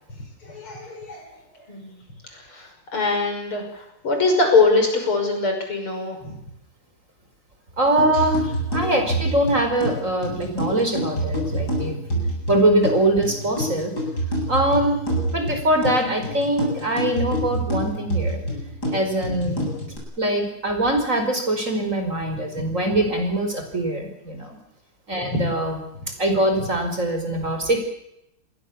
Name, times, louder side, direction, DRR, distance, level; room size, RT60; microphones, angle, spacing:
voice 1, 0.4-1.3 1.7-2.0 2.3-6.3 19.5-19.7 22.7-22.8 25.2-25.5, left 3 dB, 75° left, 4 dB, 6.9 m, -23 dB
voice 2, 7.8-12.0 12.5-13.9 14.5-15.0 15.3-18.4 18.9-19.6 20.2-24.6 25.1-25.8 26.2-27.8, right 1 dB, 35° right, 5 dB, 5.4 m, -22 dB
sound 1, 8.0-20.0, right 1 dB, 45° left, 8.8 m, -27 dB
29.0 x 21.5 x 7.2 m, 0.82 s
omnidirectional pair, 2.4 m